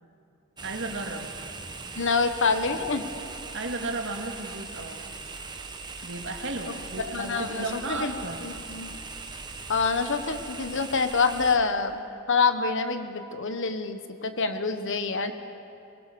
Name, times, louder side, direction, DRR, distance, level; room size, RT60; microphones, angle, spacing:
sound 1, 0.6-11.6, right 4 dB, 20° right, 1.3 m, -40 dB
voice 1, 0.6-1.3 3.5-5.0 6.0-8.4, right 2 dB, 60° right, 3 dB, 2.2 m, -34 dB
voice 2, 2.0-3.0 6.7-6.8 7.1-8.1 8.4-8.9 9.7-12.0 12.3-15.3, left 4 dB, 60° left, 9 dB, 1.3 m, -26 dB
23.0 x 22.0 x 6.9 m, 2.6 s
head